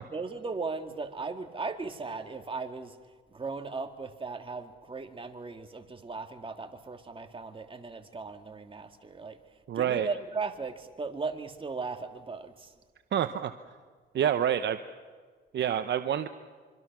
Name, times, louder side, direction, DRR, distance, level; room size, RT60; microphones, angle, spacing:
voice 1, 0.1-3.0 3.3-9.4 9.7-12.7, right 4 dB, 25° right, 6 dB, 2.1 m, -37 dB
voice 2, 9.7-10.1 13.1-13.5 14.1-14.8 15.5-16.3, right 9 dB, 60° right, 9 dB, 0.9 m, -27 dB
25.0 x 25.0 x 6.1 m, 1.5 s
cardioid pair, 90°, 20 cm